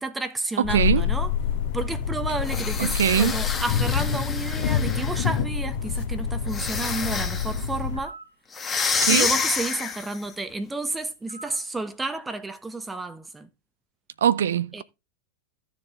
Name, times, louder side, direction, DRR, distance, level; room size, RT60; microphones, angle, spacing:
voice 1, 0.0-1.3 1.7-8.1 9.1-13.5 14.7-14.8, right 2 dB, 10° right, 0.9 m, -31 dB
sound 1, 0.6-8.0, left 7 dB, 50° left, 1.6 m, -27 dB
voice 2, 0.7-1.0 2.8-3.3 9.0-9.3 14.2-14.8, right 9 dB, 65° right, 0.5 m, -22 dB
sound 2, 2.4-5.4 6.5-7.6 8.5-10.2, left 5 dB, 20° left, 1.9 m, -28 dB
sound 3, 7.9-8.3 11.3-11.7, right 3 dB, 85° right, 1.6 m, -43 dB
14.5 x 6.8 x 3.7 m
figure-of-eight pair, 90°, 0 cm